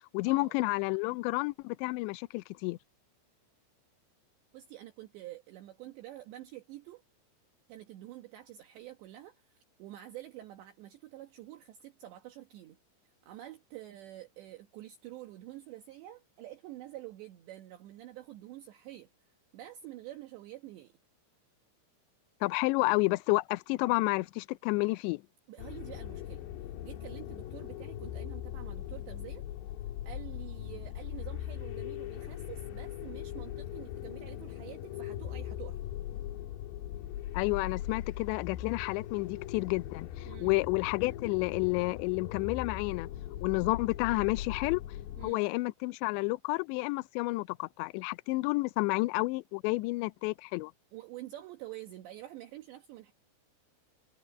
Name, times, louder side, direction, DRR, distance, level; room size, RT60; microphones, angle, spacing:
voice 1, 0.1-2.8 22.4-25.2 37.3-43.1 43.4-44.8 45.2-50.7, left 24 dB, 85° left, 2.5 m, -30 dB
voice 2, 4.5-7.0 7.7-12.8 13.0-19.1 19.5-20.9 25.5-29.4 30.1-35.8 40.3-40.6 45.2-45.4 50.9-53.1, right 14 dB, 70° right, 3.4 m, -48 dB
sound 1, 25.6-45.3, left 12 dB, 70° left, 2.9 m, -40 dB
omnidirectional pair, 5.9 m